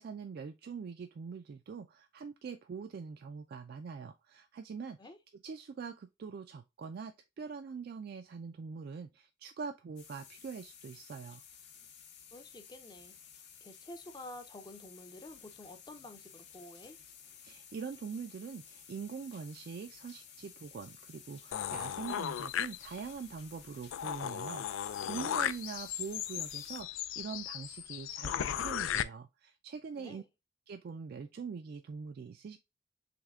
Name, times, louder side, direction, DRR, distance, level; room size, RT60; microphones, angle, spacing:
voice 1, 0.0-5.0 5.4-11.4 17.4-30.2 30.7-32.6, right 5 dB, 50° right, 0.3 m, -43 dB
sound 1, 10.0-26.8, left 8 dB, 60° left, 0.7 m, -55 dB
voice 2, 12.3-13.2 13.6-17.0 30.0-30.3, left 1 dB, 20° left, 0.5 m, -50 dB
sound 2, 21.5-23.2 23.6-23.7 23.9-29.0, left 10 dB, 85° left, 0.3 m, -36 dB
3.5 x 3.2 x 3.5 m
head